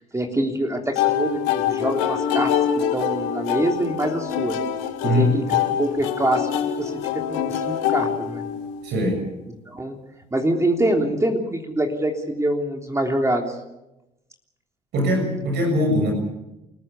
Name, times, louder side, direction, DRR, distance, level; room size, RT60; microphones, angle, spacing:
voice 1, 0.0-2.5 2.9-4.6 5.1-5.4 5.8-6.5 6.8-8.4 9.7-10.0 10.3-13.6, right 1 dB, 15° right, 2 dB, 3.4 m, -25 dB
sound 1, 1.0-8.9, left 9 dB, 80° left, 2.1 m, -25 dB
voice 2, 5.0-5.4 8.8-9.2 14.9-16.1, left 1 dB, 65° right, 3 dB, 7.0 m, -21 dB
29.0 x 14.0 x 8.5 m, 0.93 s
hypercardioid pair, 60°, 19 cm